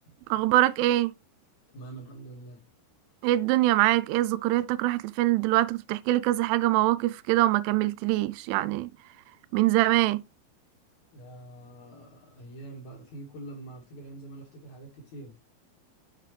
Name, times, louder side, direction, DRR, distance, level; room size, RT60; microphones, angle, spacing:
voice 1, 0.3-1.1 3.2-8.9 9.5-10.2, right 16 dB, 90° right, 3.0 m, -24 dB
voice 2, 1.7-2.6 11.1-15.3, right 2 dB, 50° left, 2.7 m, -44 dB
7.4 x 6.7 x 3.3 m
omnidirectional pair, 5.4 m